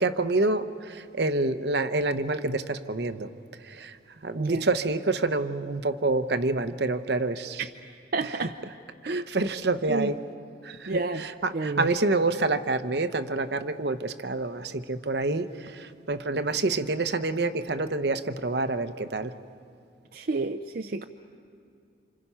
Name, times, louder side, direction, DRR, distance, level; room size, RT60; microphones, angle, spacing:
voice 1, 0.0-3.3 3.6-4.0 4.2-7.7 8.2-8.7 9.0-10.2 10.6-19.3, right 3 dB, 70° right, 10 dB, 0.9 m, -27 dB
voice 2, 8.1-8.5 9.0-9.3 9.9-10.1 10.9-11.2 11.5-11.9 20.1-21.0, right 3 dB, 55° right, 7 dB, 0.5 m, -29 dB
29.0 x 27.0 x 5.7 m, 2.4 s
head